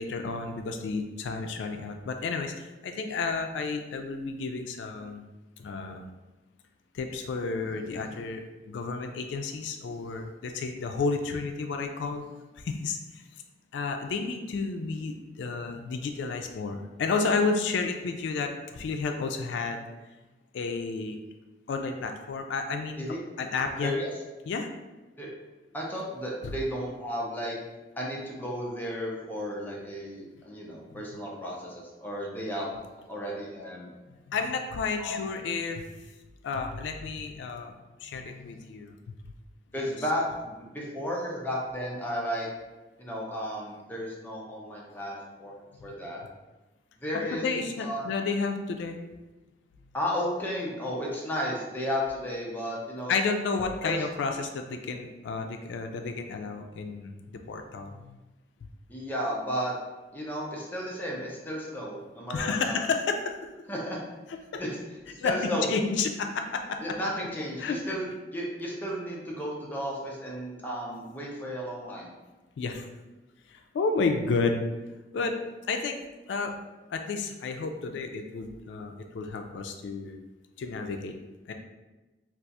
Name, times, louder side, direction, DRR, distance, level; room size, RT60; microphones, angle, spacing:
voice 1, 0.0-5.3 5.6-6.1 6.9-12.2 12.6-13.2 13.7-19.8 20.5-21.2 21.7-23.0 23.4-23.9 24.5-24.7 26.4-26.5 30.9-31.0 34.1-35.9 36.4-37.7 38.0-38.9 45.8-45.9 47.3-49.0 53.1-58.2 62.3-63.3 64.5-64.6 65.2-66.8 67.6-68.0 72.6-72.9 73.5-74.6 75.1-75.3 75.7-76.6 76.9-80.2 80.6-81.1 81.5-81.6, left 4 dB, 85° left, 5 dB, 0.3 m, -31 dB
voice 2, 23.8-24.1 25.2-25.3 25.7-27.5 28.0-32.8 33.1-33.9 35.0-35.2 39.7-42.5 43.0-46.2 47.0-47.4 47.8-48.1 49.9-53.1 53.8-54.0 58.9-59.7 60.1-62.8 63.7-64.0 64.6-64.8 65.1-65.7 66.8-72.1, equal, 10° left, -4 dB, 0.6 m, -33 dB
2.4 x 2.3 x 4.0 m, 1.1 s
head